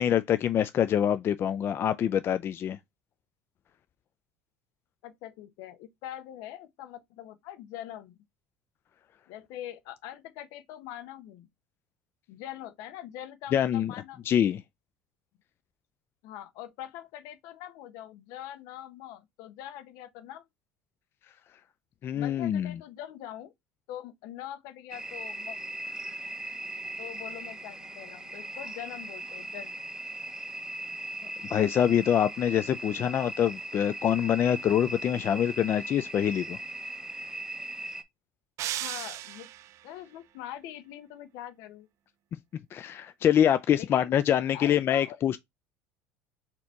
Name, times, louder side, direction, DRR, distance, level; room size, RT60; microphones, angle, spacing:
voice 1, 0.0-2.8 13.5-13.9 14.3-14.6 22.0-22.8 31.5-36.6 42.7-45.4, left 9 dB, 40° left, 0.3 m, -25 dB
voice 2, 5.0-8.2 9.3-11.5 12.3-14.2 16.2-20.4 22.1-23.5 23.9-25.6 27.0-29.7 38.8-39.5 39.8-41.9 43.8-44.1 44.5-45.2, left 12 dB, 70° left, 0.8 m, -43 dB
sound 1, 24.9-38.0, right 1 dB, 10° right, 0.8 m, -39 dB
sound 2, 38.6-39.8, right 13 dB, 55° right, 0.4 m, -35 dB
4.2 x 2.8 x 4.5 m
hypercardioid pair, 85°, 6 cm